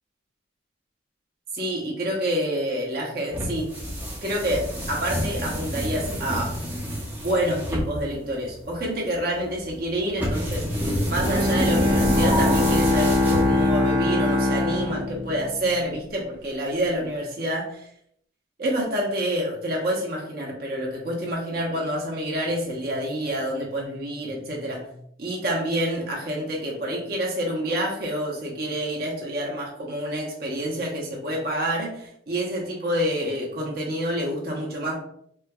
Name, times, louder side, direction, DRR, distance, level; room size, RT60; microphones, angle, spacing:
voice 1, 1.5-3.8 4.2-6.6 7.2-17.9 18.6-24.9 25.2-35.0, equal, 50° right, -2 dB, 0.9 m, -28 dB
sound 1, 3.3-13.9, equal, 10° right, 0.6 m, -28 dB
Bowed string instrument, 11.2-15.6, left 2 dB, 85° right, 0.8 m, -22 dB
4.4 x 2.2 x 2.3 m, 0.68 s
head